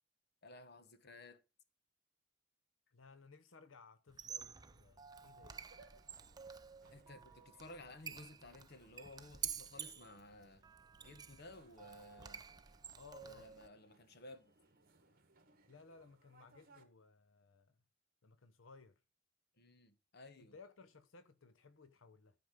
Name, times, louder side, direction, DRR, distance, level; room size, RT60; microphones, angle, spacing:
voice 1, 0.4-1.4 6.9-10.7 11.0-12.4 13.2-14.5 19.6-20.6, left 2 dB, 55° left, 1.2 m, -56 dB
voice 2, 2.9-5.7 13.0-13.5 15.7-17.8 18.2-19.0 20.4-22.3, left 4 dB, 85° left, 0.9 m, -60 dB
Squeak, 4.1-13.7, right 7 dB, 20° right, 0.5 m, -50 dB
sound 1, 5.6-16.8, right 3 dB, 50° right, 1.7 m, -69 dB
13.0 x 5.1 x 5.2 m
head